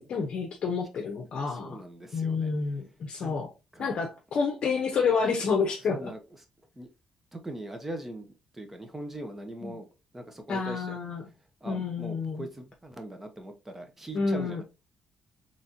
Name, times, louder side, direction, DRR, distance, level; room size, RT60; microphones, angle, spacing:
voice 1, 0.0-1.8 2.1-3.5 3.8-6.1 9.6-9.8 10.5-11.2 11.6-12.5 14.1-14.6, left 5 dB, 55° left, 0.8 m, -29 dB
voice 2, 1.4-2.5 3.2-3.4 3.7-3.9 5.8-6.4 6.8-6.9 7.3-9.8 10.1-11.0 11.6-14.6, right 1 dB, 10° right, 0.8 m, -41 dB
4.1 x 3.2 x 2.6 m
cardioid pair, 140°, 2 cm